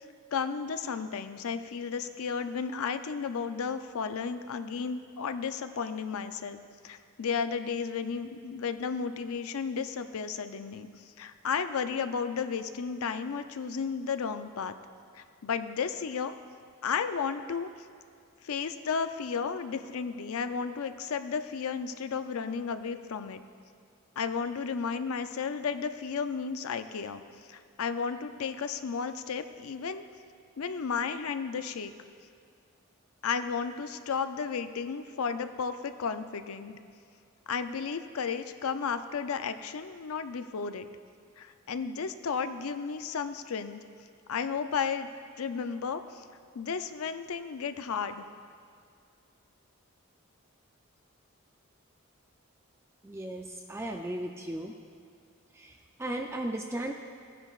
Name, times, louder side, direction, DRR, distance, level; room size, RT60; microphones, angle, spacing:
voice 1, 0.3-10.9 11.2-14.8 15.1-16.4 16.8-17.7 18.4-23.4 24.2-27.2 27.5-30.0 30.6-31.9 33.2-36.7 37.5-40.9 41.4-43.8 44.3-45.1 45.4-46.2 46.5-48.2, left 6 dB, 85° left, 10 dB, 0.5 m, -33 dB
voice 2, 53.0-54.7 55.5-56.9, right 1 dB, 10° right, 2 dB, 0.4 m, -36 dB
16.5 x 10.0 x 2.4 m, 2.3 s
head